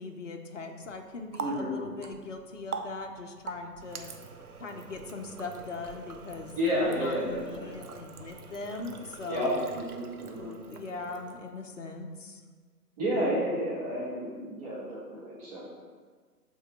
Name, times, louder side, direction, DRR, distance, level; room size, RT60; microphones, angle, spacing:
voice 1, 0.0-4.1 4.6-9.7 10.3-12.4, left 3 dB, 50° left, 3 dB, 0.8 m, -40 dB
Water tap faucet, 0.8-11.6, right 4 dB, 65° right, 0.7 m, -44 dB
voice 2, 1.4-1.7 6.6-7.7 9.3-10.5 13.0-15.7, equal, 25° right, -9 dB, 1.5 m, -31 dB
5.6 x 3.8 x 5.7 m, 1.5 s
figure-of-eight pair, 135°, 49 cm